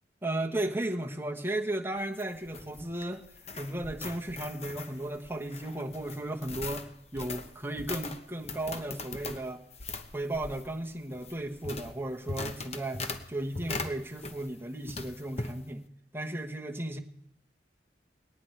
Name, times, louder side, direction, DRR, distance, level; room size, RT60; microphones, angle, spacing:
voice 1, 0.2-3.2 3.5-6.9 7.1-9.6 10.1-15.8 16.1-17.0, right 1 dB, 15° right, 2 dB, 1.2 m, -35 dB
sound 1, 2.0-14.6 14.9-15.6, left 3 dB, 40° left, 1.0 m, -41 dB
20.0 x 18.5 x 3.3 m, 0.73 s
head